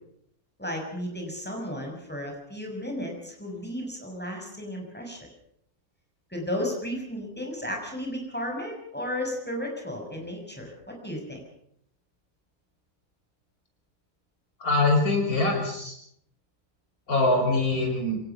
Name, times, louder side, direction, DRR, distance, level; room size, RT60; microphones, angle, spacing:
voice 1, 0.6-5.3 6.3-11.4, equal, 5° left, 1 dB, 6.2 m, -34 dB
voice 2, 14.6-15.9 17.1-18.2, left 2 dB, 70° left, 2 dB, 6.2 m, -23 dB
26.5 x 18.0 x 5.9 m, 0.70 s
omnidirectional pair, 1.6 m